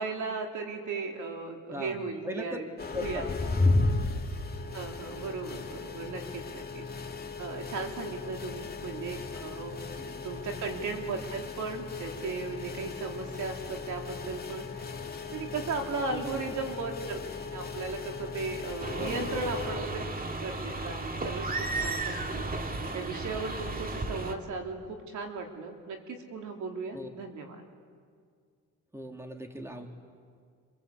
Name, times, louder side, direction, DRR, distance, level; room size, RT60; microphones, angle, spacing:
voice 1, 0.0-2.7 3.0-3.3 4.7-6.9 7.4-14.9 15.3-20.0 20.4-22.5 22.9-27.6, right 4 dB, 75° right, 3 dB, 3.5 m, -36 dB
voice 2, 1.7-2.6 2.9-3.2 3.5-3.6 6.8-6.9 10.0-10.3 16.1-16.5 19.0-19.3 22.3-22.4 26.9-27.1 28.9-29.9, left 1 dB, 10° right, 3 dB, 3.0 m, -40 dB
sound 1, 2.8-19.8, left 3 dB, 30° left, 2.6 m, -35 dB
sound 2, 18.8-24.3, right 2 dB, 30° right, 2.3 m, -34 dB
26.5 x 26.0 x 8.4 m, 2.1 s
cardioid pair, 90°, 30 cm